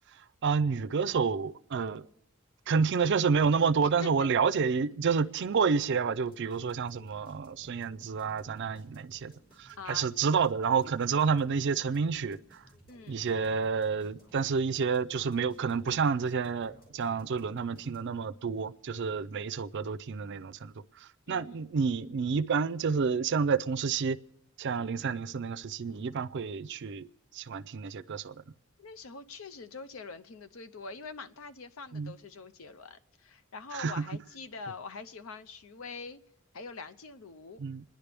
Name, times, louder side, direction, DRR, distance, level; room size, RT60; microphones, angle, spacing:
voice 1, 0.4-2.0 2.7-9.3 9.6-12.6 13.1-20.7 21.0-24.2 24.6-27.1 27.3-28.3 31.9-32.1 33.7-34.0 37.6-37.8, right 5 dB, 55° right, 0.4 m, -29 dB
voice 2, 4.0-4.3 9.8-10.1 12.9-13.3 21.3-21.6 28.8-36.2 36.5-37.6, left 4 dB, 70° left, 0.6 m, -44 dB
sound 1, 6.1-18.3, right 1 dB, 40° left, 4.4 m, -59 dB
28.0 x 10.5 x 3.4 m
head